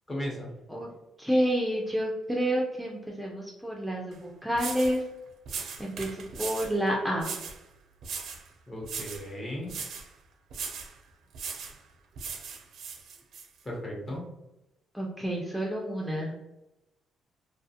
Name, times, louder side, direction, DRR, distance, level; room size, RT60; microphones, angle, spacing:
voice 1, 0.1-0.5 8.7-9.7 13.6-14.2, equal, 25° left, -2 dB, 0.9 m, -36 dB
voice 2, 1.2-5.0 5.8-7.3 14.9-16.3, equal, 5° right, -2 dB, 0.4 m, -29 dB
sound 1, 4.1-4.2 4.5-5.0 5.5-6.8 7.2-7.6 8.0-8.5 8.8-9.3 9.7-10.1 10.5-10.9 11.3-11.8 12.2-13.5, right 5 dB, 70° right, 0.4 m, -38 dB
2.3 x 2.3 x 2.7 m, 0.94 s
cardioid pair, 90°, 0 cm